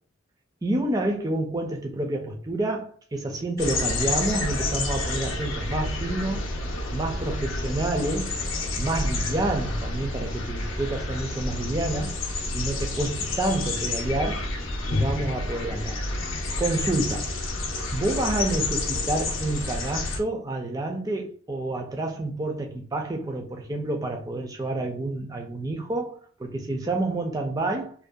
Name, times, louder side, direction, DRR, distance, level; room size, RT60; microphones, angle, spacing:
voice 1, 0.6-6.5 6.9-8.3 8.8-12.2 12.5-14.5 14.9-16.0 16.6-17.3 17.9-27.9, right 2 dB, 20° right, 0.3 m, -28 dB
sound 1, 3.6-20.2, left 2 dB, 75° left, 0.5 m, -29 dB
2.6 x 2.1 x 2.2 m
head